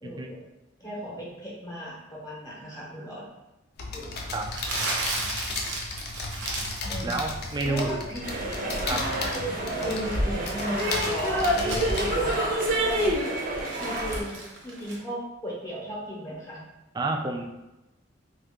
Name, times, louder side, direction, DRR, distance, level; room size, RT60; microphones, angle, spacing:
voice 1, 0.0-0.4 0.8-3.3 3.9-4.1 6.8-7.2 7.6-8.2 9.8-13.2 13.8-16.6, equal, 20° left, -6 dB, 0.8 m, -35 dB
sound 1, 3.8-12.4, left 3 dB, 55° left, 0.5 m, -35 dB
Crumpling crinkling, 4.5-6.9 7.2-7.6 9.3-12.2 12.7-15.0, right 2 dB, 80° right, 0.7 m, -35 dB
voice 2, 7.0-8.0 8.8-9.0 16.9-17.4, right 3 dB, 20° right, 2 dB, 0.3 m, -29 dB
sound 2, 8.2-14.2, right 1 dB, 50° right, 0.7 m, -27 dB
2.8 x 2.4 x 3.5 m, 0.99 s
head